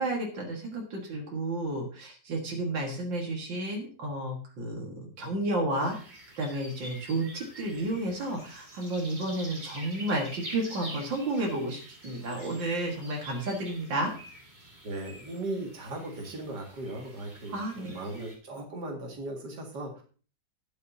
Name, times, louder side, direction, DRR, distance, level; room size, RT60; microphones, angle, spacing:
voice 1, 0.0-14.1 17.5-18.0, right 1 dB, 85° right, 0 dB, 2.5 m, -32 dB
sound 1, 5.8-18.4, right 1 dB, 25° right, 2.4 m, -47 dB
voice 2, 14.8-20.0, right 2 dB, 65° right, 0 dB, 2.8 m, -38 dB
19.0 x 6.6 x 2.8 m, 0.40 s
omnidirectional pair, 2.0 m